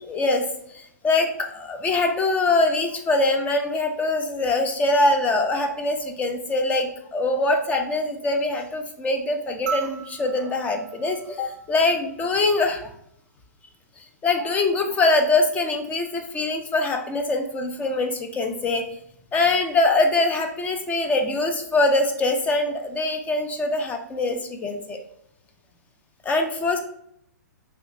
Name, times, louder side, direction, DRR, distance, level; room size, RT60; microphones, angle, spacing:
voice 1, 0.1-12.9 14.2-18.8 19.3-25.0 26.2-26.8, left 2 dB, 15° left, 5 dB, 0.4 m, -23 dB
sound 1, 9.7-12.2 13.8-13.9, right 7 dB, 50° right, 0.5 m, -36 dB
3.2 x 2.8 x 2.7 m, 0.70 s
hypercardioid pair, 130°, 10 cm